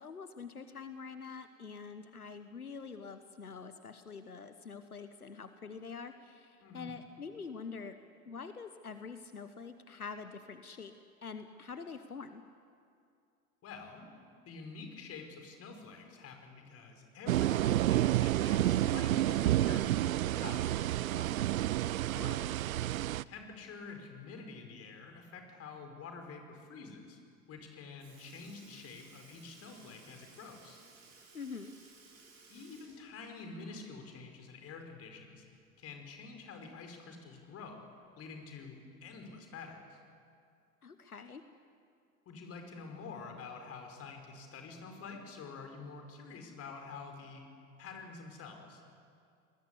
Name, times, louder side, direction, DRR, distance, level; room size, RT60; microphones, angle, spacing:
voice 1, 0.0-8.0 8.3-10.9 11.2-12.4 22.1-22.6 31.3-31.7 40.8-41.4, left 5 dB, 85° left, 10 dB, 1.2 m, -45 dB
voice 2, 6.6-6.9 13.6-14.1 14.4-21.3 23.3-27.2 27.5-30.8 32.5-35.4 35.8-37.8 38.2-40.0 42.2-47.5 47.8-48.8, left 4 dB, 35° left, 4 dB, 5.1 m, -48 dB
sound 1, 17.3-23.2, right 14 dB, 70° right, 0.6 m, -29 dB
Sink (filling or washing) / Liquid, 27.6-27.7 28.0-34.1 34.5-34.6 36.1-36.2 37.1-37.2 38.0-38.3 39.1-39.2, right 4 dB, 50° right, 7.9 m, -59 dB
28.0 x 20.5 x 8.4 m, 2.3 s
figure-of-eight pair, 85°, 43 cm